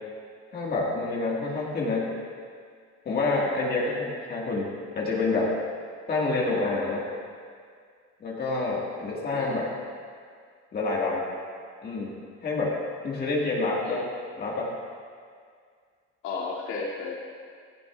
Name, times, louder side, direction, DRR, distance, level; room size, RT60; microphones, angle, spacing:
voice 1, 0.5-2.1 3.1-4.7 5.0-5.5 6.1-7.0 8.2-9.7 10.7-11.2 11.8-12.2 12.4-12.8 13.0-14.0 14.4-14.7, left 3 dB, 30° left, -4 dB, 1.8 m, -27 dB
voice 2, 9.1-9.6 13.8-14.1 16.2-17.2, left 4 dB, 70° left, -4 dB, 2.6 m, -35 dB
16.0 x 16.0 x 2.4 m, 2.1 s
cardioid pair, 165°, 30 cm